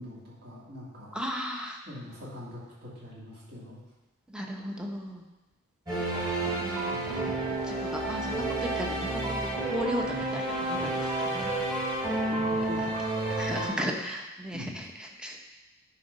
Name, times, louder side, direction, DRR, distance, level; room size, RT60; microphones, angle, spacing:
voice 1, 0.0-1.2 1.9-3.8 6.9-7.2 12.3-13.0 13.5-13.8 14.5-14.8, left 1 dB, 50° right, -6 dB, 2.6 m, -43 dB
voice 2, 1.1-1.8 4.3-5.2 6.4-7.4 7.7-9.4 9.7-11.5 13.4-15.4, equal, 5° right, 1 dB, 0.9 m, -36 dB
sound 1, 5.9-13.7, right 2 dB, 20° right, 3.0 m, -30 dB
9.9 x 3.9 x 5.4 m, 1.1 s
head